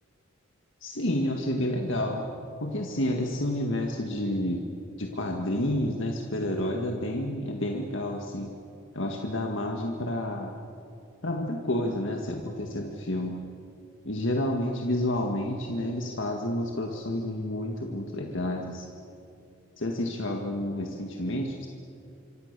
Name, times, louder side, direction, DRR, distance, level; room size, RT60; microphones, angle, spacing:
voice 1, 0.8-2.2 2.6-4.7 5.0-8.5 8.9-10.5 11.2-13.4 14.0-18.9 19.8-21.7, left 1 dB, 60° left, 2 dB, 1.9 m, -30 dB
26.0 x 25.5 x 6.9 m, 2.5 s
head